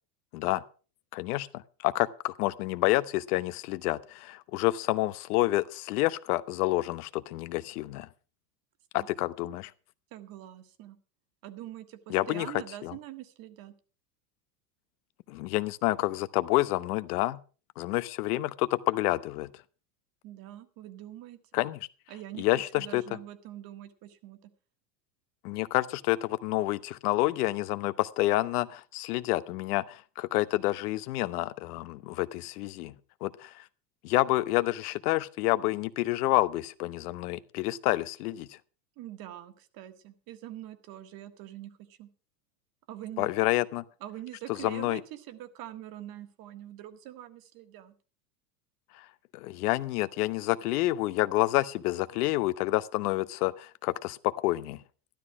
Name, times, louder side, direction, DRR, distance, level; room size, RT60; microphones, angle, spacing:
voice 1, 0.3-0.6 1.1-8.1 8.9-9.7 12.1-12.5 12.8-12.9 15.3-17.4 17.8-19.5 21.5-21.9 22.4-23.0 25.4-32.9 33.2-33.7 34.0-38.6 43.2-43.8 44.5-45.0 49.0-49.1 49.3-54.8, left 18 dB, 70° left, 15 dB, 1.0 m, -28 dB
voice 2, 10.1-11.0 11.4-13.7 20.2-21.4 22.1-24.5 39.0-42.1 42.9-43.3 44.0-47.9, right 13 dB, 45° right, 10 dB, 1.7 m, -44 dB
12.5 x 12.0 x 4.8 m, 0.37 s
supercardioid pair, 120°, 47 cm